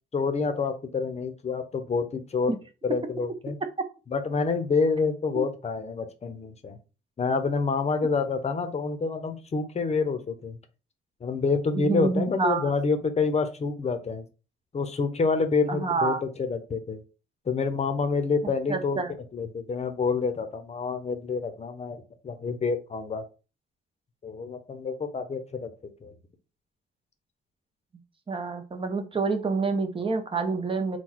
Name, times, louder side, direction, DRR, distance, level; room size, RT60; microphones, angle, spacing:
voice 1, 0.1-2.5 2.8-3.6 4.1-6.8 7.2-10.6 11.2-14.3 14.7-17.0 17.5-19.0 19.3-23.2 24.2-25.7 26.0-26.1, left 4 dB, 35° left, 8 dB, 0.8 m, -27 dB
voice 2, 11.7-12.7 15.7-16.2 18.4-19.1 28.3-31.0, right 4 dB, 25° right, 6 dB, 0.9 m, -28 dB
3.9 x 2.3 x 4.5 m, 0.33 s
cardioid pair, 90°, 20 cm